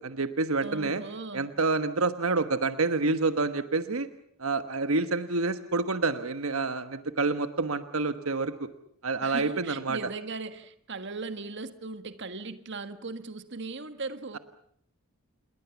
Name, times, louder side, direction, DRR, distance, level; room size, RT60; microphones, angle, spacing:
voice 1, 0.0-1.0 1.3-4.1 4.4-8.7 9.0-10.0, right 3 dB, 80° right, 10 dB, 1.3 m, -28 dB
voice 2, 0.6-1.5 9.2-14.4, right 3 dB, 55° right, 10 dB, 1.6 m, -38 dB
28.5 x 22.0 x 7.2 m, 0.67 s
head